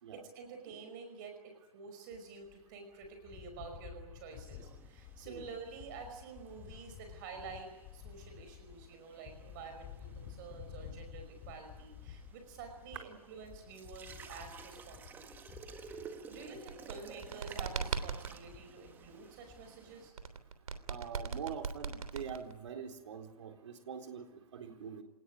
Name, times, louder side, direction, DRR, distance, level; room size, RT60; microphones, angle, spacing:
voice 1, 0.1-15.4 15.8-16.0 16.3-20.1, right 5 dB, 30° right, 6 dB, 5.4 m, -49 dB
sound 1, 2.4-19.9, left 9 dB, 25° left, 3.1 m, -52 dB
sound 2, 4.3-20.1, right 6 dB, 10° right, 1.6 m, -55 dB
sound 3, 16.6-18.4 20.2-22.7, right 5 dB, 65° right, 3.3 m, -39 dB
voice 2, 20.9-25.0, right 7 dB, 50° right, 4 dB, 4.0 m, -44 dB
27.0 x 19.5 x 9.9 m, 1.0 s
hypercardioid pair, 150°, 19 cm